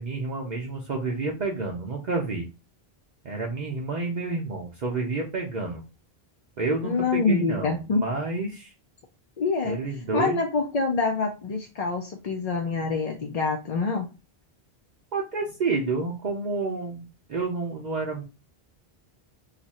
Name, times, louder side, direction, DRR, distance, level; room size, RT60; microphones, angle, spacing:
voice 1, 0.0-2.5 3.2-5.8 6.6-8.7 9.6-10.4 15.1-18.2, right 3 dB, 50° right, -1 dB, 0.7 m, -29 dB
voice 2, 6.8-8.0 9.4-9.8 10.1-14.1, left 4 dB, 50° left, 2 dB, 0.5 m, -26 dB
2.6 x 2.4 x 4.1 m, 0.29 s
omnidirectional pair, 1.0 m